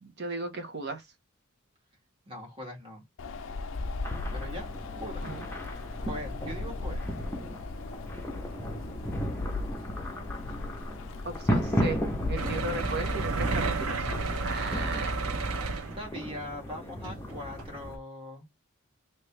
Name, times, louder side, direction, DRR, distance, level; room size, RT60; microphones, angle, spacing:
voice 1, 0.0-1.0 5.2-5.5 11.2-12.0 12.3-14.1 14.4-15.2, right 2 dB, 50° right, 1.1 m, -36 dB
voice 2, 2.3-3.0 4.3-4.7 5.0-5.3 6.0-7.0 15.9-18.5, left 1 dB, 25° right, 1.8 m, -41 dB
Wind, 3.2-14.8, left 3 dB, 65° left, 0.5 m, -38 dB
sound 1, 4.0-18.0, equal, 10° left, 0.8 m, -35 dB
sound 2, 12.4-16.3 17.0-17.2 17.6-17.7, right 3 dB, 85° right, 0.7 m, -31 dB
3.2 x 2.9 x 3.3 m
head